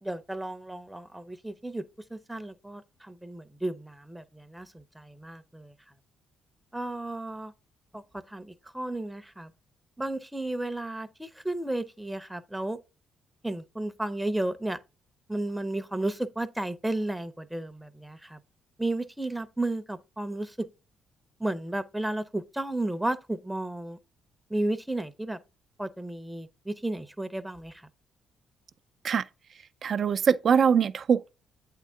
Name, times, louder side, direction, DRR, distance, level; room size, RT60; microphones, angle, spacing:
voice 1, 0.0-1.8 2.1-5.7 6.7-7.5 7.9-9.5 10.0-12.8 13.4-14.8 15.3-18.4 18.8-20.7 21.4-24.0 24.5-25.4 25.8-27.9, right 1 dB, 5° right, 0.6 m, -33 dB
voice 2, 29.8-31.3, right 7 dB, 55° right, 0.3 m, -23 dB
8.2 x 3.7 x 3.4 m
hypercardioid pair, 50°, 0 cm